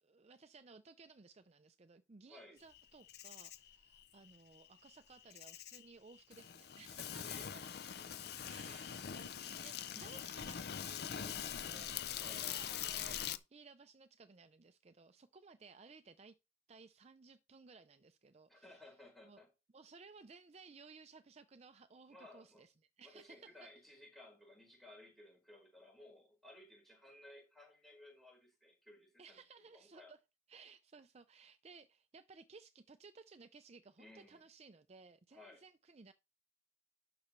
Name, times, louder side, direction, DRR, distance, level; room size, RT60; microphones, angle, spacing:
voice 1, 0.0-7.7 8.5-16.3 16.7-18.8 19.2-19.4 19.7-23.7 29.2-30.2 30.5-36.1, right 4 dB, 35° right, 0.5 m, -59 dB
voice 2, 2.3-2.6 7.2-7.6 8.0-8.7 11.1-11.4 12.2-12.4 18.5-19.5 22.1-22.6 23.0-29.4 29.7-30.1 34.0-34.4 35.3-35.6, left 1 dB, ahead, 4.6 m, -58 dB
Insect, 2.7-13.4, left 9 dB, 60° left, 0.5 m, -44 dB
11.5 x 6.8 x 3.2 m
head